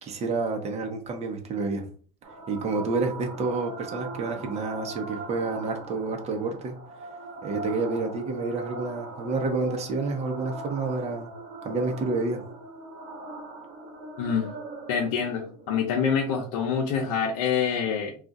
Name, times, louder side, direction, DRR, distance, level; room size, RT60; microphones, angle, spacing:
voice 1, 0.0-1.8 2.5-6.7 7.4-11.3 11.6-12.4, right 3 dB, 35° right, 0.8 m, -29 dB
sound 1, 2.2-17.2, right 3 dB, 70° right, 0.9 m, -41 dB
voice 2, 14.2-14.6 14.9-18.1, left 6 dB, 75° left, 0.7 m, -26 dB
2.4 x 2.4 x 4.0 m
supercardioid pair, 115°, 20 cm